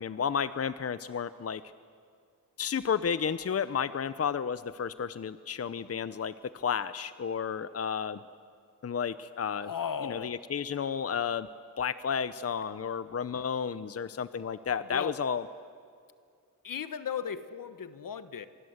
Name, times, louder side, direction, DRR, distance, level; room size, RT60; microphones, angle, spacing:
voice 1, 0.0-1.6 2.6-8.2 8.8-9.7 10.0-11.5 11.8-15.4, left 7 dB, 45° left, 14 dB, 0.8 m, -32 dB
voice 2, 9.6-10.4 14.9-15.2 16.6-18.5, left 7 dB, 70° left, 12 dB, 1.3 m, -36 dB
29.0 x 24.5 x 8.1 m, 2.3 s
cardioid pair, 70°, 34 cm